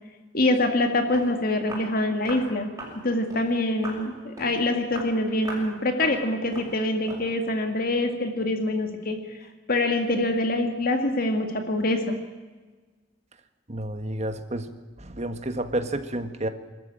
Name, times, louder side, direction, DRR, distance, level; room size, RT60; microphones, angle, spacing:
voice 1, 0.3-2.7 3.0-9.2 9.7-12.2, left 2 dB, 50° left, 5 dB, 2.2 m, -25 dB
Walk footsteps, 0.8-0.9 1.1-1.3 1.7-1.9 2.2-2.5 2.8-3.0 3.3-3.5 3.8-4.0 4.4-4.6 4.9-5.1 5.4-5.7 6.0-6.2 6.5-6.7 7.1-7.3, right 1 dB, 15° right, 7.2 m, -38 dB
voice 2, 13.7-14.7 15.0-16.5, right 1 dB, 35° right, 8 dB, 1.6 m, -30 dB
24.0 x 13.5 x 8.9 m, 1.3 s
head